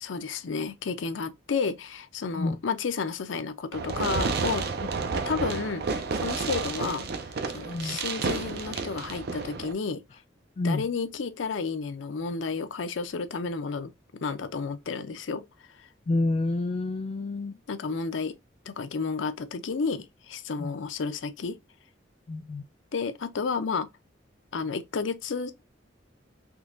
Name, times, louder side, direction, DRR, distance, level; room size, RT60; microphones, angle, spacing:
voice 1, 0.0-4.7 5.3-7.1 7.5-10.0 10.6-15.4 17.7-18.3 18.7-21.6 22.9-23.9 24.5-25.7, left 5 dB, 85° left, 0.5 m, -31 dB
Fireworks, 3.7-9.7, right 4 dB, 55° right, 0.5 m, -31 dB
voice 2, 16.1-17.6 20.6-20.8 22.3-22.6, left 2 dB, 35° left, 0.3 m, -28 dB
3.7 x 2.8 x 2.5 m
head